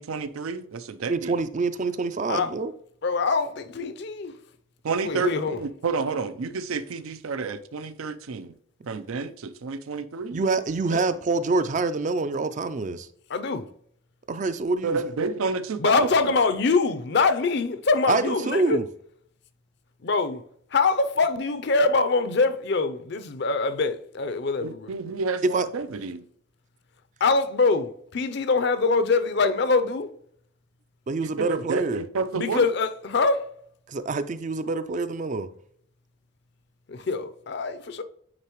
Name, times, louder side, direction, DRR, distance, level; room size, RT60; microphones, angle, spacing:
voice 1, 0.0-1.4 4.8-8.5 8.9-10.4 10.9-11.0 14.8-16.3 24.6-26.2 31.2-32.7, right 4 dB, 90° right, 0.5 m, -30 dB
voice 2, 1.1-2.7 10.3-13.1 14.3-15.0 18.1-18.9 25.5-25.7 31.1-32.0 33.9-35.5, right 3 dB, 35° right, 0.3 m, -26 dB
voice 3, 3.0-4.3 5.0-5.6 13.3-13.7 15.8-18.8 20.0-20.4 20.7-24.9 27.2-30.1 32.3-33.5 36.9-38.0, left 4 dB, 55° left, 0.5 m, -24 dB
8.8 x 3.8 x 3.0 m
head